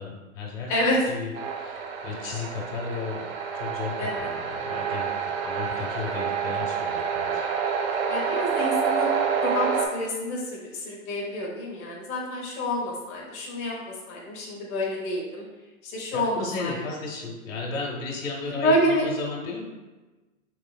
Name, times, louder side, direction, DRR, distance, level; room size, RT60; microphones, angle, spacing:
voice 1, 0.0-0.7 1.1-1.3 1.6-7.4 16.1-19.7, left 4 dB, 70° left, -1 dB, 1.1 m, -34 dB
voice 2, 0.7-1.0 4.0-4.3 8.1-9.1 9.4-13.8 14.1-15.4 15.8-16.8 18.5-19.1, left 1 dB, 30° left, -4 dB, 0.7 m, -28 dB
sound 1, 1.3-9.9, right 6 dB, 45° right, 0.5 m, -28 dB
3.1 x 3.1 x 2.2 m, 1.2 s
hypercardioid pair, 120°, 41 cm